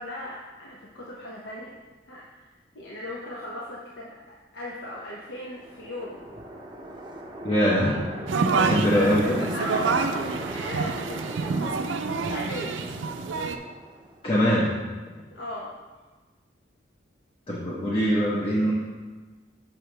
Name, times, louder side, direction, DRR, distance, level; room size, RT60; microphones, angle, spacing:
voice 1, 0.0-1.8 2.1-6.2 8.4-11.8 12.3-12.8 15.3-15.7, left 1 dB, 75° left, -5 dB, 0.9 m, -37 dB
sound 1, 5.3-14.3, right 1 dB, 25° right, 0.6 m, -39 dB
voice 2, 7.4-7.9 8.7-9.4 14.2-14.7 17.5-18.7, equal, 30° left, -6 dB, 0.9 m, -22 dB
sound 2, 8.3-13.6, right 4 dB, 85° right, 0.4 m, -27 dB
6.8 x 5.9 x 3.3 m, 1.3 s
head